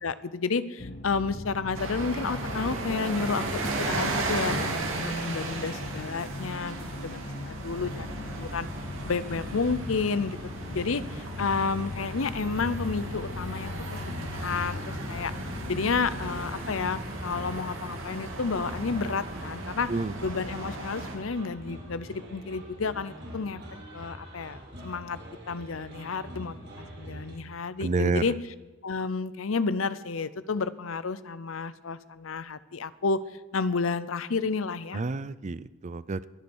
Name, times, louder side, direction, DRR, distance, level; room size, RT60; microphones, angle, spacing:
voice 1, 0.0-6.8 7.0-8.7 9.0-10.4 10.7-13.7 14.2-15.3 15.7-19.9 20.2-23.6 23.9-25.2 25.5-28.3 28.8-33.2 33.5-35.0, left 4 dB, 85° left, 16 dB, 0.7 m, -31 dB
sound 1, 0.8-16.4, left 2 dB, 45° left, 0.8 m, -40 dB
sound 2, 1.7-21.2, right 2 dB, 85° right, 3.1 m, -36 dB
sound 3, 7.7-27.4, equal, 60° right, 4.7 m, -44 dB
voice 2, 27.8-28.3 34.9-36.3, right 3 dB, 35° right, 16 dB, 0.5 m, -29 dB
22.5 x 8.6 x 6.3 m, 1.2 s
head